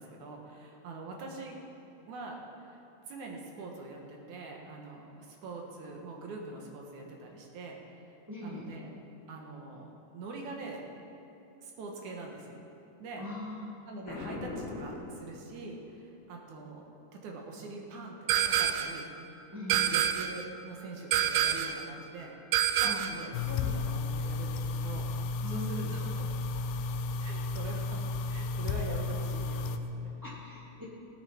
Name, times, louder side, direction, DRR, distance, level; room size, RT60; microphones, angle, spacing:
voice 1, 0.0-1.6 2.1-2.8 3.1-8.0 8.4-8.9 9.3-10.8 11.6-12.6 13.0-13.3 13.8-19.1 19.7-22.3 22.8-26.3 27.2-30.1, right 3 dB, 65° right, 0 dB, 2.7 m, -44 dB
voice 2, 8.3-8.7 13.2-13.7 19.5-19.9 22.8-23.1 25.4-25.9 30.2-30.8, left 2 dB, 5° right, -7 dB, 1.9 m, -41 dB
Boom, 14.0-15.9, left 2 dB, 60° left, 3.3 m, -40 dB
sound 1, 18.3-19.0 19.7-20.4 21.1-21.8 22.5-23.3, right 10 dB, 85° right, 1.7 m, -27 dB
sound 2, 23.3-29.8, left 3 dB, 80° left, 2.1 m, -33 dB
17.0 x 9.5 x 4.5 m, 2.9 s
omnidirectional pair, 4.0 m